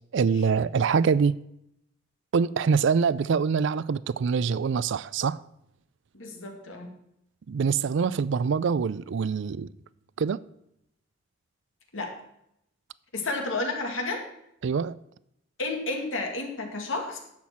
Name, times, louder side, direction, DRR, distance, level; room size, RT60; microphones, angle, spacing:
voice 1, 0.1-1.4 2.3-5.4 7.5-9.7 10.2-10.4 14.6-15.0, right 5 dB, 65° right, 0.4 m, -24 dB
voice 2, 6.1-6.9 11.9-12.2 13.1-14.2 15.6-17.2, left 2 dB, 85° left, 2.2 m, -31 dB
10.5 x 7.4 x 6.0 m
head